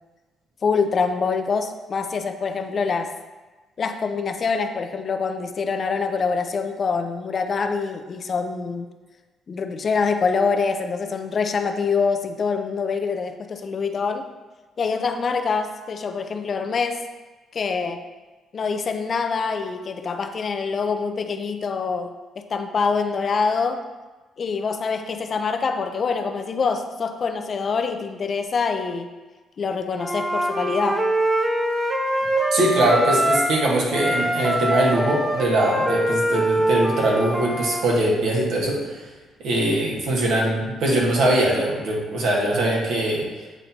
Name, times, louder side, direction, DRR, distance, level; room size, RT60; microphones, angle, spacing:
voice 1, 0.6-3.1 3.8-8.9 9.5-14.3 14.8-17.0 17.5-18.0 18.5-22.1 22.4-23.8 24.4-29.1 29.6-31.0, left 5 dB, 45° left, 6 dB, 0.5 m, -25 dB
Wind instrument woodwind instrument, 30.0-33.6 33.9-37.9, right 1 dB, 20° right, 0.8 m, -23 dB
voice 2, 32.5-39.1 39.4-43.2, right 1 dB, 80° right, -3 dB, 1.4 m, -22 dB
8.2 x 4.0 x 2.9 m, 1.2 s
cardioid pair, 90°, 0 cm